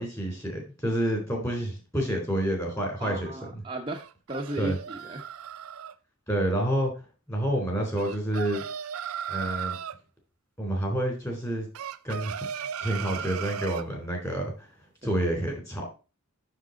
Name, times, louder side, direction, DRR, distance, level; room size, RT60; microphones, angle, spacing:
voice 1, 0.0-3.3 4.6-4.8 6.3-6.9 7.3-8.6 9.3-9.8 10.6-11.7 12.0-12.4 12.8-14.7 15.0-15.9, right 1 dB, 15° left, 1 dB, 3.7 m, -28 dB
voice 2, 3.0-5.2 15.0-15.1, right 2 dB, 25° right, 1 dB, 0.9 m, -35 dB
sound 1, 3.9-5.9 8.0-10.0 11.7-13.9, right 8 dB, 80° right, 0.5 m, -36 dB
7.5 x 6.8 x 3.9 m, 0.32 s
head